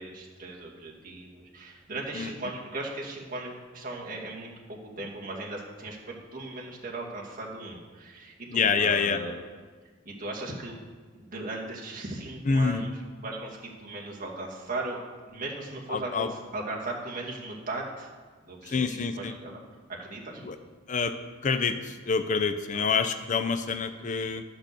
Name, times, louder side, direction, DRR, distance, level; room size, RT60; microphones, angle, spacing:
voice 1, 0.0-9.3 10.0-10.8 11.1-15.0 15.3-18.1 18.4-19.6 19.9-20.4 22.7-23.0, right 2 dB, 45° right, -3 dB, 2.2 m, -38 dB
voice 2, 8.5-9.2 12.5-12.9 15.9-16.3 18.7-19.3 20.4-20.6 20.9-21.1 21.4-24.4, left 5 dB, 40° left, 9 dB, 0.5 m, -27 dB
11.5 x 6.0 x 6.8 m, 1.4 s
head